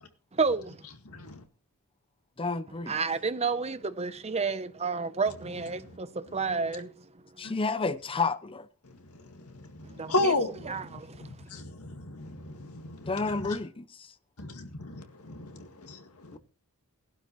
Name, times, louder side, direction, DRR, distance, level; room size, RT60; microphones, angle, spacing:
voice 1, 0.3-0.9 2.9-7.1 7.4-7.5 9.9-10.3 10.7-11.3, right 4 dB, 30° right, 0.8 m, -31 dB
voice 2, 1.1-1.4 8.8-13.6 14.4-16.4, left 2 dB, 80° left, 2.0 m, -34 dB
voice 3, 2.4-3.0 7.4-8.7 13.0-14.1 16.3-16.4, left 4 dB, 25° left, 0.6 m, -31 dB
18.0 x 11.5 x 3.2 m
head